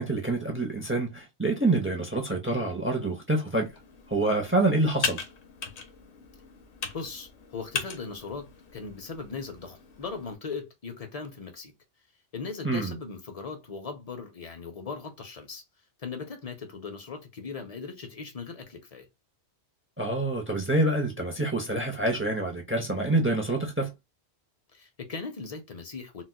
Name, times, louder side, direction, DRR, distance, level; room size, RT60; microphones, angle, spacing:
voice 1, 0.0-3.7 4.1-5.2 12.6-12.9 20.0-23.9, right 2 dB, 15° right, 0.4 m, -26 dB
Computer keyboard, 3.6-10.4, left 5 dB, 75° left, 1.0 m, -38 dB
voice 2, 6.9-11.7 12.3-15.6 16.0-19.1 24.7-26.2, left 4 dB, 40° left, 0.7 m, -39 dB
4.0 x 2.2 x 2.2 m
omnidirectional pair, 1.1 m